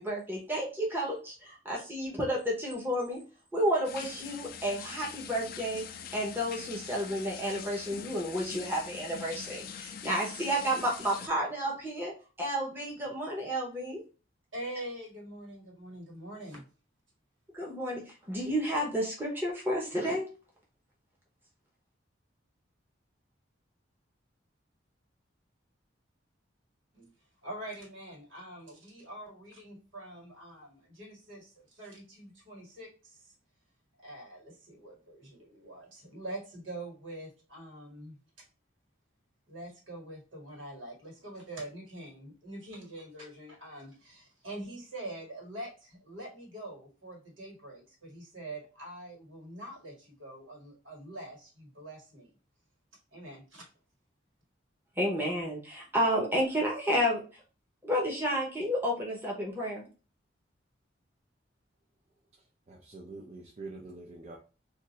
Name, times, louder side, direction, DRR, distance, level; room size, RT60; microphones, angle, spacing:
voice 1, 0.0-3.2 3.5-5.8 6.1-14.0 17.5-20.3 55.0-57.4 57.8-59.9, equal, 10° right, -3 dB, 0.8 m, -31 dB
sound 1, 3.8-11.3, left 8 dB, 50° left, 0.3 m, -43 dB
voice 2, 14.5-16.6 26.9-27.1 27.4-33.3 34.0-38.2 39.5-52.3 53.1-53.7, right 1 dB, 85° right, 0 dB, 1.7 m, -44 dB
voice 3, 62.7-64.4, right 3 dB, 35° right, -2 dB, 0.5 m, -45 dB
2.5 x 2.5 x 4.1 m, 0.34 s
head